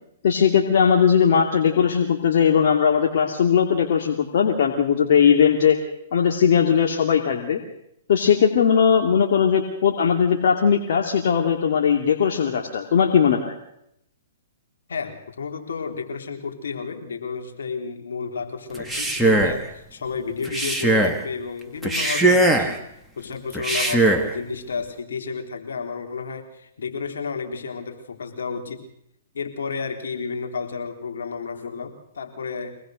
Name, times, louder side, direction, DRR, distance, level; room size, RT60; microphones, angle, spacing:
voice 1, 0.2-5.8 6.1-7.6 8.1-13.5, left 7 dB, 65° left, 1 dB, 2.7 m, -19 dB
voice 2, 14.9-22.8 23.2-28.8 29.3-32.7, left 5 dB, 80° left, 3 dB, 3.7 m, -31 dB
Male speech man speaking, 18.7-19.7 20.4-21.2 21.8-22.8 23.5-24.3, right 2 dB, ahead, 2.1 m, -20 dB
25.0 x 19.0 x 6.5 m, 0.76 s
hypercardioid pair, 130°, 0 cm